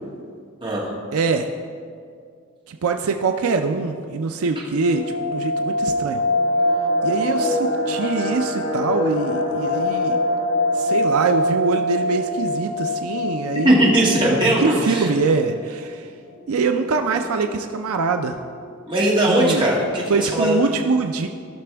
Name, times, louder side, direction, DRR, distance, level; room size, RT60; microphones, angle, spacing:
voice 1, 0.6-0.9 13.6-15.1 18.9-20.7, right 1 dB, 25° right, -4 dB, 1.9 m, -19 dB
voice 2, 1.1-1.5 2.7-6.2 7.0-10.2 10.7-13.8 14.6-16.1 16.5-18.4 19.3-19.6 20.1-21.3, right 4 dB, 80° right, 6 dB, 0.5 m, -23 dB
sound 1, 4.8-15.6 15.9-16.0 16.4-16.5 17.0-17.4 17.9-18.0 18.2-18.7 19.0-19.1, left 1 dB, 65° left, 1.3 m, -24 dB
16.0 x 6.0 x 3.4 m, 2.2 s
head